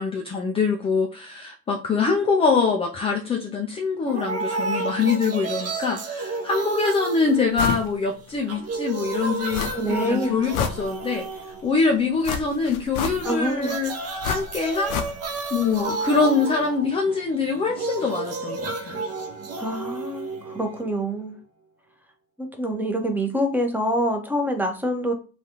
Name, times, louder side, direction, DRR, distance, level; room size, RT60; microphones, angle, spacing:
voice 1, 0.0-11.3 11.6-13.9 14.2-15.0 15.5-19.0, left 4 dB, 15° left, 2 dB, 0.3 m, -24 dB
sound 1, 4.1-8.0 8.3-12.1 13.1-21.1, right 3 dB, 35° right, 0.8 m, -32 dB
sound 2, 7.6-7.9 8.3-8.4 9.5-10.0 10.3-11.3 12.2-13.5 14.2-15.5 15.7-15.8, left 7 dB, 55° left, 0.6 m, -29 dB
voice 2, 9.7-10.4 13.2-13.7 19.6-21.4 22.4-25.1, equal, 5° right, 4 dB, 0.8 m, -26 dB
3.2 x 2.3 x 2.8 m, 0.36 s
hypercardioid pair, 65°, 41 cm